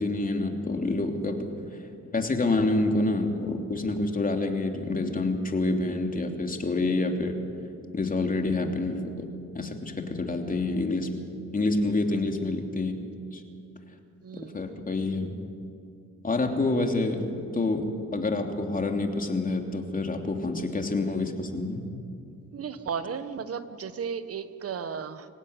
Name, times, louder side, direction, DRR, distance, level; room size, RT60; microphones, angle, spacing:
voice 1, 0.0-1.8 2.1-7.4 7.9-9.3 9.5-11.1 11.5-12.9 13.3-13.4 14.3-15.3 16.2-17.9 18.1-21.8, left 2 dB, 30° left, 3 dB, 3.1 m, -27 dB
voice 2, 14.2-14.6 22.5-25.3, right 6 dB, 50° right, 12 dB, 1.4 m, -34 dB
25.5 x 16.0 x 9.8 m, 2.5 s
cardioid pair, 90°, 30 cm